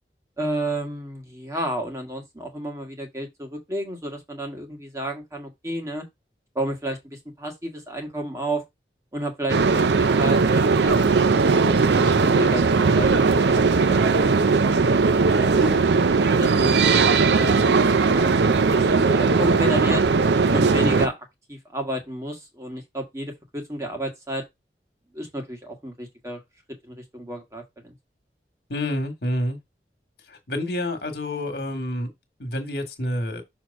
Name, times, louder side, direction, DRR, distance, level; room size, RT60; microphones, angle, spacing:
voice 1, 0.4-6.0 6.5-8.6 9.1-14.6 16.4-16.8 17.3-20.0 20.5-21.2 21.5-24.4 25.1-26.4 26.8-27.9, right 1 dB, 15° right, 1.5 m, -31 dB
sound 1, 9.5-21.1, right 4 dB, 80° right, 0.5 m, -19 dB
voice 2, 28.7-29.6 30.3-32.1 32.4-33.4, left 1 dB, 60° left, 1.6 m, -28 dB
6.3 x 2.9 x 5.2 m
head